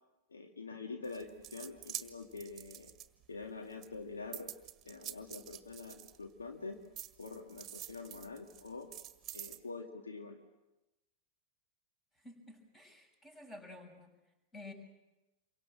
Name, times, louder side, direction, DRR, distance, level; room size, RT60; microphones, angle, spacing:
voice 1, 0.3-2.9 3.3-4.5 4.8-6.8 7.2-8.9 9.3-10.4, left 4 dB, 75° left, 3 dB, 2.1 m, -45 dB
sound 1, 1.0-3.4 3.8-6.5 6.9-9.6, right 11 dB, 30° right, 1.7 m, -47 dB
voice 2, 12.2-14.1 14.5-14.7, left 2 dB, 20° left, 5 dB, 6.6 m, -51 dB
28.0 x 24.0 x 7.5 m, 1.0 s
figure-of-eight pair, 90°, 0 cm